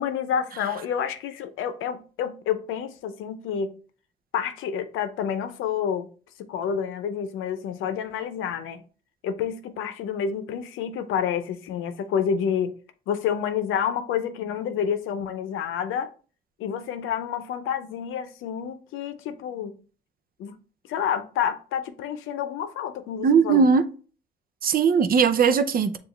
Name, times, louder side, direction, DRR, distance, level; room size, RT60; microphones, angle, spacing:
voice 1, 0.0-3.7 4.3-6.1 6.4-8.8 9.2-12.7 13.1-16.1 16.6-19.8 20.4-20.6 20.9-23.7, left 8 dB, 90° left, 0.6 m, -29 dB
voice 2, 23.2-23.9 24.6-26.0, right 6 dB, 45° right, 0.6 m, -19 dB
7.0 x 2.5 x 3.1 m
cardioid pair, 90°, 20 cm